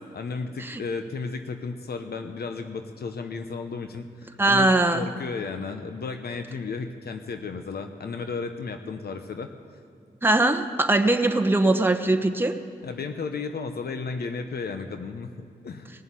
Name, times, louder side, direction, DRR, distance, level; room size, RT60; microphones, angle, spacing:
voice 1, 0.1-9.5 12.8-15.3 15.6-15.9, left 4 dB, 70° left, 7 dB, 0.9 m, -33 dB
voice 2, 4.4-5.1 10.2-12.5, right 2 dB, 10° right, 6 dB, 1.0 m, -21 dB
18.5 x 7.2 x 8.4 m, 2.4 s
supercardioid pair, 40°, 17 cm